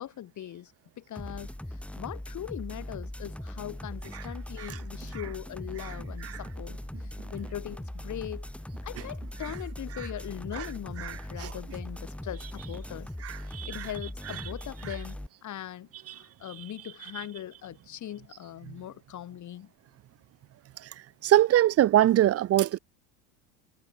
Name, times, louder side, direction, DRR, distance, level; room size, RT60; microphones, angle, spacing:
voice 1, 0.0-1.5 2.0-8.5 8.8-13.1 13.7-19.7, left 11 dB, 40° left, 3.8 m, -40 dB
sound 1, 1.2-15.3, left 1 dB, 5° left, 2.5 m, -40 dB
voice 2, 11.0-11.5 13.2-13.9 16.1-16.2 20.8-20.9 21.2-22.8, right 13 dB, 35° right, 0.8 m, -24 dB
supercardioid pair, 100°, 43 cm